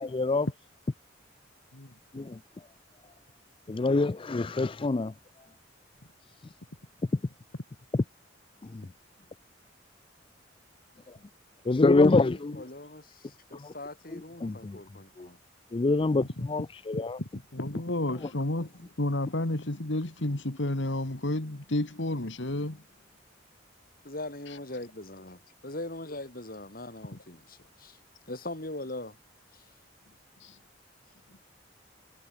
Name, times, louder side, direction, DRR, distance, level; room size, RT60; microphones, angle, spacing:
voice 1, 0.0-0.5 2.1-2.3 3.7-5.1 7.9-8.0 11.7-12.5 14.4-14.8 15.7-17.2, left 3 dB, 30° left, 0.4 m, -25 dB
voice 2, 12.2-15.4 24.0-28.0 28.3-29.2 29.5-29.6, left 1 dB, 50° left, 5.2 m, -41 dB
voice 3, 16.9-22.8 24.5-24.6 30.4-30.6, left 1 dB, 70° left, 2.0 m, -31 dB
head